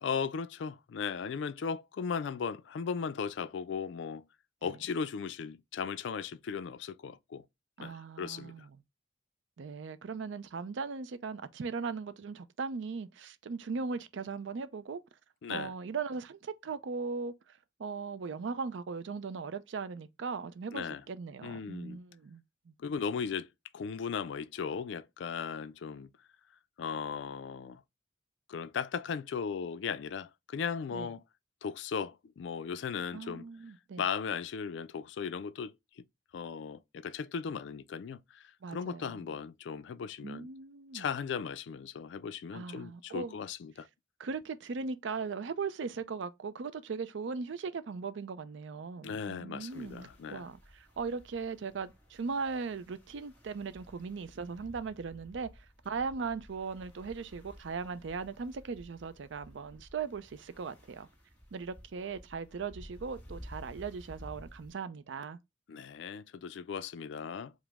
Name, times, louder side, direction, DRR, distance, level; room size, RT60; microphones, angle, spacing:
voice 1, 0.0-4.2 4.6-7.4 7.8-8.5 15.4-15.7 20.7-21.0 21.4-22.0 22.8-23.5 23.7-26.1 26.8-27.8 28.5-31.2 31.6-33.4 34.0-35.7 36.3-40.5 40.9-43.9 49.0-50.5 65.7-67.5, left 6 dB, 75° left, 0.3 m, -37 dB
voice 2, 7.8-8.8 9.6-15.0 15.5-22.7 30.9-31.1 33.1-34.0 38.6-39.3 40.2-41.1 42.5-43.4 44.2-61.1 61.5-65.4, right 5 dB, 75° right, 0.4 m, -39 dB
sound 1, 49.7-64.7, equal, 10° left, 1.6 m, -54 dB
4.9 x 2.0 x 3.4 m
head